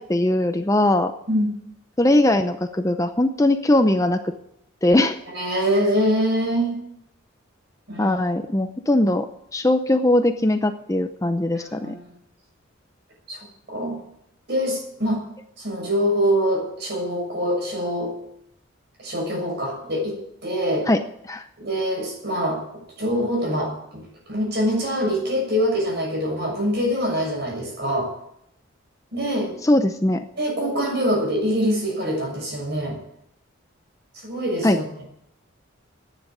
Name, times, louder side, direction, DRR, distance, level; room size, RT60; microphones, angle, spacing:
voice 1, 0.0-1.1 2.0-4.3 4.8-5.2 8.0-9.3 9.5-12.0 20.9-21.0 21.2-21.5 29.6-30.2 34.6-34.8, left 1 dB, 15° left, 7 dB, 0.6 m, -20 dB
voice 2, 5.3-6.8 7.9-8.1 11.5-11.9 13.3-14.0 14.5-15.2 15.6-18.2 19.0-20.9 21.6-22.6 23.0-24.0 24.3-28.1 29.1-29.5 30.4-33.0 34.1-34.8, equal, 50° right, 0 dB, 6.6 m, -24 dB
11.5 x 9.8 x 9.2 m, 0.74 s
head